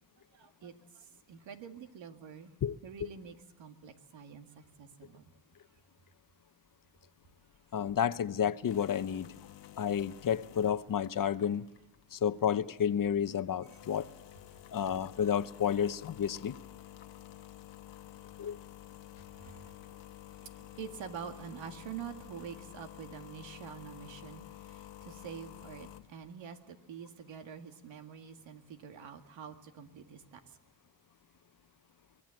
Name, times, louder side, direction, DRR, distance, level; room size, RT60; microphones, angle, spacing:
voice 1, 0.3-2.5 2.8-5.3 18.4-18.5 19.3-30.4, right 7 dB, 85° right, 2.1 m, -47 dB
sound 1, 7.2-26.3, left 13 dB, 70° left, 1.1 m, -52 dB
voice 2, 7.7-9.3 9.8-11.7 12.1-14.1 14.7-16.6 18.4-18.6, left 8 dB, 50° left, 0.9 m, -31 dB
24.0 x 19.0 x 7.8 m
cardioid pair, 95°, 44 cm